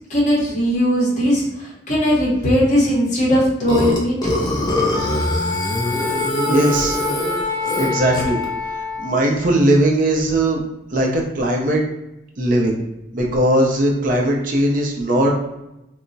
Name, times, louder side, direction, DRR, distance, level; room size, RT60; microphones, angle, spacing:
voice 1, 0.1-4.3, equal, 40° left, -6 dB, 0.9 m, -18 dB
Burping eructation, 3.7-8.4, left 1 dB, 20° left, 0.5 m, -23 dB
Wind instrument woodwind instrument, 4.9-9.2, left 3 dB, 15° right, 0.9 m, -26 dB
voice 2, 6.5-7.0 7.8-8.4 9.0-10.6 10.9-11.8 12.4-12.7 13.1-15.3, right 1 dB, 45° right, -1 dB, 0.5 m, -18 dB
2.2 x 2.0 x 3.8 m, 0.91 s
head